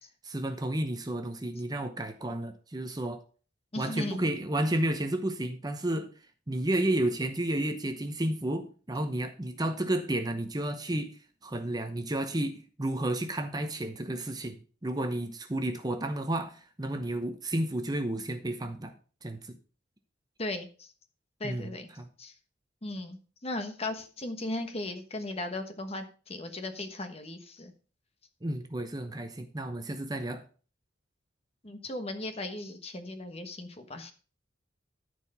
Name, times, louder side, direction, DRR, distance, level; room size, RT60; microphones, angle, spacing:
voice 1, 0.2-3.2 3.8-6.1 6.5-18.9 19.2-19.6 21.4-21.7 22.0-22.1 28.4-30.4, right 1 dB, 20° right, 0.8 m, -32 dB
voice 2, 3.7-4.2 20.4-20.9 21.4-21.9 22.2-22.3 22.8-27.7 31.6-34.1, left 2 dB, 30° left, 1.2 m, -37 dB
13.5 x 4.7 x 5.5 m
head